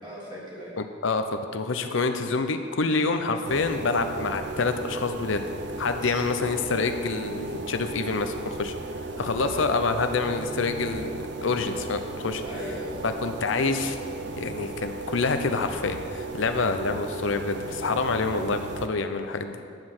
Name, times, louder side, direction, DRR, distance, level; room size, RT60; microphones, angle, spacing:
voice 1, 0.0-0.8 6.0-6.3 9.4-9.6 12.4-13.2, equal, 20° right, -5 dB, 1.6 m, -39 dB
voice 2, 0.8-1.2 1.5-5.4 5.8-8.7 9.2-12.4 13.0-14.0 14.4-19.6, left 4 dB, 75° left, 7 dB, 0.6 m, -27 dB
sound 1, 3.5-18.9, right 3 dB, 60° right, 0.6 m, -36 dB
10.5 x 7.6 x 6.1 m, 2.3 s
head